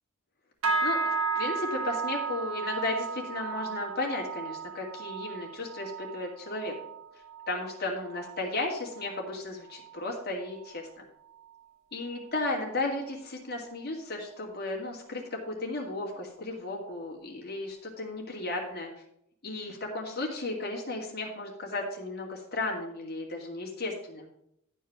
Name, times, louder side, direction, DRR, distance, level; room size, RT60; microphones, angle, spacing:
sound 1, 0.6-10.2 10.5-10.9 11.3-11.6 12.2-12.3, right 4 dB, 70° right, 1.3 m, -35 dB
voice 1, 0.8-6.7 7.5-10.9 11.9-18.9 19.4-24.3, left 2 dB, 50° left, -2 dB, 2.3 m, -34 dB
11.0 x 4.6 x 5.9 m, 0.76 s
head